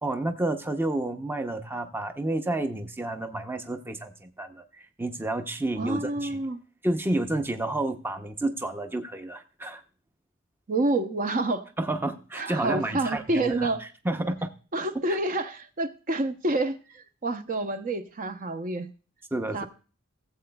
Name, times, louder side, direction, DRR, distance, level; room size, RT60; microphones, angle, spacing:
voice 1, 0.0-6.4 6.8-9.8 11.8-13.7 14.0-14.5 19.3-19.7, right 2 dB, 10° right, 7 dB, 0.6 m, -30 dB
voice 2, 5.8-6.6 10.7-11.7 12.4-13.8 14.7-18.9 19.5-19.7, right 2 dB, 40° right, 9 dB, 0.7 m, -28 dB
17.5 x 7.7 x 2.2 m, 0.37 s
head